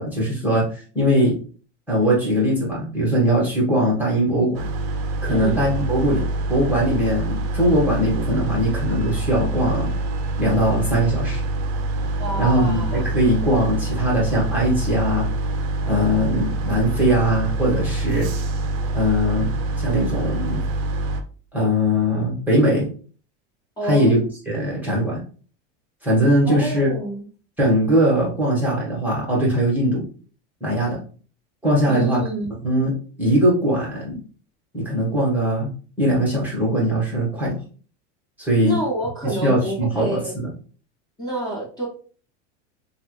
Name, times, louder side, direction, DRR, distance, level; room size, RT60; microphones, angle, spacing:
voice 1, 0.0-1.4 1.9-4.7 5.2-6.2 6.5-9.9 10.4-11.4 12.4-15.3 15.9-18.3 18.9-20.6 21.5-22.9 23.8-24.2 24.5-25.2 26.0-26.9 27.6-30.1 30.6-31.0 31.6-32.2 32.6-32.9 33.2-34.2 34.7-35.7 36.0-37.6 38.4-38.8 39.2-40.5, equal, 5° right, -5 dB, 1.4 m, -20 dB
sound 1, 4.5-21.2, right 2 dB, 45° right, 0.6 m, -25 dB
voice 2, 5.3-5.7 12.2-13.1 23.8-24.1 26.4-27.2 31.9-32.5 38.6-40.3 41.2-41.9, right 1 dB, 10° left, -7 dB, 1.3 m, -28 dB
3.1 x 2.5 x 3.1 m, 0.40 s
supercardioid pair, 125°, 37 cm